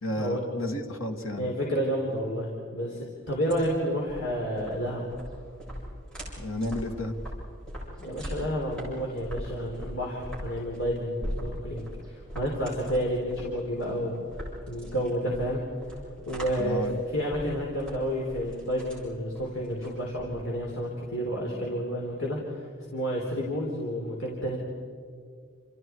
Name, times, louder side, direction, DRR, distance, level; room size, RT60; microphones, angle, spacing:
voice 1, 0.0-1.5 6.4-7.2 16.6-17.0, left 1 dB, 90° left, 4 dB, 2.2 m, -32 dB
voice 2, 1.4-5.0 8.0-14.3 14.7-15.6 16.3-16.8 17.1-22.6 22.9-24.6, equal, 75° left, -3 dB, 4.0 m, -30 dB
sound 1, 3.2-20.7, equal, 5° left, 7.4 m, -41 dB
29.0 x 29.0 x 4.7 m, 2.2 s
head